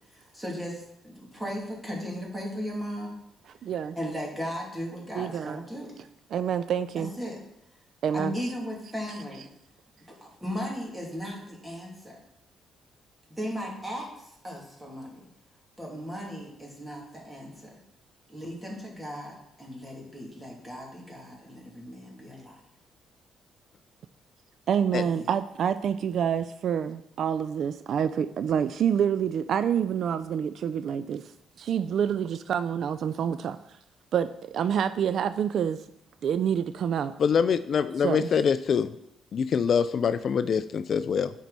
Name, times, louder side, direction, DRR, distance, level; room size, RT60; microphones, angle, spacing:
voice 1, 0.1-3.2 4.0-5.9 6.9-7.4 8.1-9.5 10.2-12.2 13.3-15.2 15.8-17.8 18.3-22.6 25.0-25.3, equal, 10° right, -2 dB, 2.7 m, -37 dB
voice 2, 3.6-4.0 5.2-5.6 6.3-7.1 8.0-8.4 24.7-31.2 31.6-33.6 34.1-35.8 36.2-37.1 38.0-38.3, right 8 dB, 65° right, 12 dB, 0.3 m, -27 dB
voice 3, 37.2-38.9 39.3-41.3, left 6 dB, 55° left, 13 dB, 0.3 m, -24 dB
10.5 x 4.4 x 4.1 m, 0.78 s
cardioid pair, 90°, 0 cm